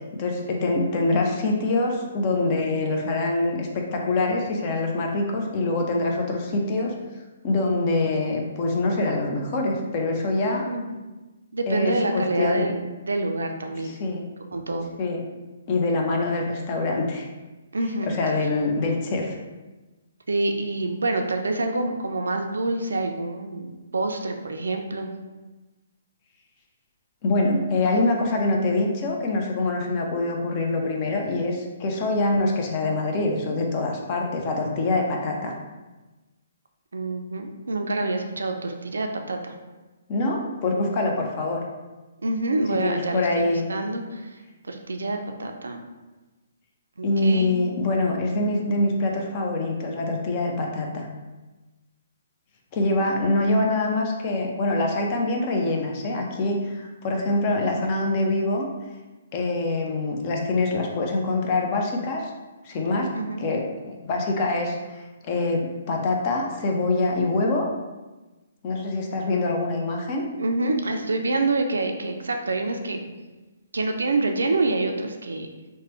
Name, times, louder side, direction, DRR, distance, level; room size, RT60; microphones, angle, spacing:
voice 1, 0.1-6.9 7.4-10.6 11.7-12.7 13.8-14.3 15.0-15.2 15.7-17.3 18.1-19.3 27.2-35.5 40.1-41.6 42.7-43.7 47.0-51.1 52.7-58.7 59.3-62.3 62.6-63.1 63.4-67.7 68.6-70.2, left 2 dB, 35° left, 1 dB, 0.5 m, -24 dB
voice 2, 10.6-11.0 11.5-12.8 13.1-14.0 14.5-14.9 17.7-18.1 20.3-25.1 36.9-39.5 42.2-44.4 44.6-45.8 47.0-47.6 63.1-63.5 70.4-73.0 73.7-75.5, right 2 dB, 80° right, 5 dB, 0.4 m, -27 dB
3.0 x 2.1 x 3.0 m, 1.2 s
hypercardioid pair, 135°, 0 cm